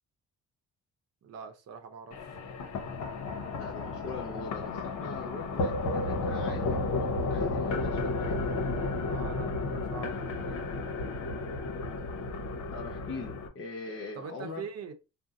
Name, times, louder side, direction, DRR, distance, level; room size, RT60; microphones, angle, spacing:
voice 1, 1.2-2.4 9.1-10.7 14.1-14.9, right 6 dB, 55° right, 0.7 m, -43 dB
sound 1, 2.1-13.5, left 3 dB, 75° left, 0.8 m, -33 dB
voice 2, 3.5-8.6 12.7-14.7, left 3 dB, 45° left, 0.7 m, -41 dB
2.6 x 2.0 x 3.8 m
cardioid pair, 90°, 30 cm